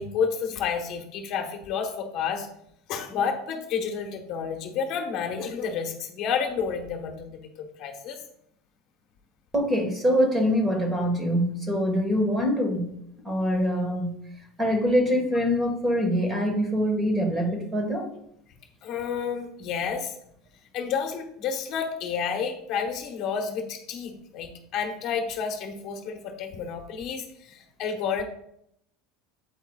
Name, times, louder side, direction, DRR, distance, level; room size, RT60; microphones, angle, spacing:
voice 1, 0.0-2.5 2.9-7.4 7.8-8.2 18.8-20.1 20.7-28.2, left 6 dB, 40° left, 4 dB, 1.1 m, -30 dB
voice 2, 9.5-12.9 13.2-14.2 14.6-18.1, equal, 10° right, 2 dB, 1.5 m, -24 dB
9.0 x 8.0 x 2.4 m, 0.71 s
cardioid pair, 175°, 0 cm